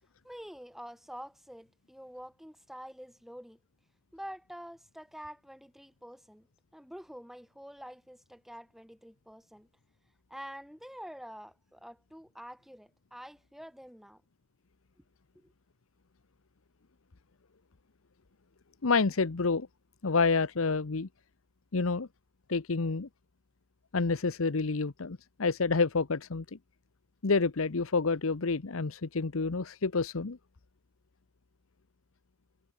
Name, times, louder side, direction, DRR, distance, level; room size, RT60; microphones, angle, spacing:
voice 1, 0.2-3.6 4.1-6.5 6.7-9.7 10.3-14.2 15.3-15.5, equal, ahead, 2.7 m, -47 dB
voice 2, 18.8-19.7 20.0-21.1 21.7-22.1 22.5-23.1 23.9-26.6 27.2-30.4, left 4 dB, 80° left, 0.9 m, -28 dB
head